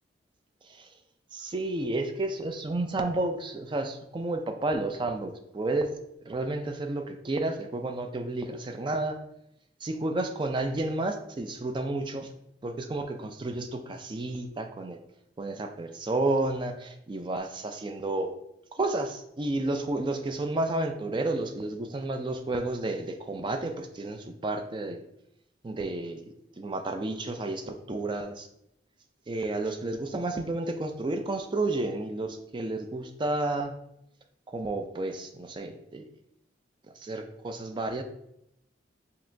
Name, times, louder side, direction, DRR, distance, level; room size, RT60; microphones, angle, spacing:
voice 1, 1.3-5.9 6.2-9.2 9.8-12.3 12.6-15.0 15.4-18.3 18.7-25.0 25.6-26.2 26.6-28.5 29.3-33.7 34.5-36.0 37.0-38.0, right 2 dB, 25° right, 6 dB, 0.3 m, -31 dB
5.3 x 2.9 x 2.6 m, 0.78 s
head